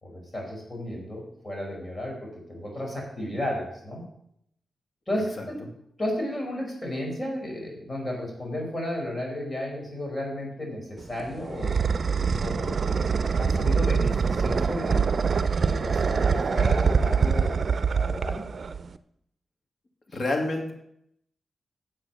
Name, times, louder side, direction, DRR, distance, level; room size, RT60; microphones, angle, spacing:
voice 1, 0.0-4.0 5.1-5.6 6.0-11.7 12.4-15.1 15.4-17.6 17.9-18.4 20.1-20.2, left 1 dB, 30° left, -1 dB, 4.8 m, -33 dB
sound 1, 11.0-19.0, right 5 dB, 60° right, 0.5 m, -24 dB
voice 2, 20.1-20.7, left 2 dB, 55° left, 2 dB, 2.4 m, -27 dB
9.1 x 7.6 x 6.0 m, 0.72 s
cardioid pair, 70°, 0 cm